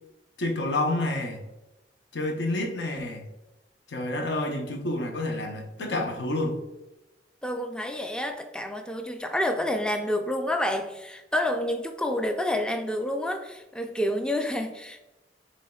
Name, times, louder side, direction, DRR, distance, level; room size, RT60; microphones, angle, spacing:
voice 1, 0.4-1.4 2.1-3.3 3.9-6.6, left 2 dB, 75° left, 3 dB, 0.8 m, -29 dB
voice 2, 7.4-15.0, left 1 dB, 5° left, 5 dB, 0.3 m, -29 dB
6.7 x 3.3 x 2.3 m, 1.0 s
head